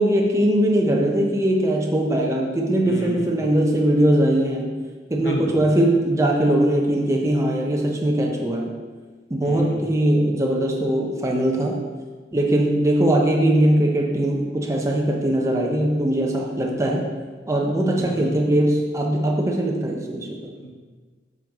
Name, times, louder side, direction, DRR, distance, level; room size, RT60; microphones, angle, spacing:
voice 1, 0.0-4.7 5.1-8.7 9.3-11.8 12.3-17.0 17.5-20.5, right 1 dB, 15° right, -1 dB, 0.6 m, -20 dB
voice 2, 2.8-3.3 5.2-5.6 9.4-9.9 18.0-18.4 20.6-20.7, left 1 dB, 70° left, 1 dB, 0.9 m, -33 dB
7.4 x 3.7 x 4.0 m, 1.4 s
head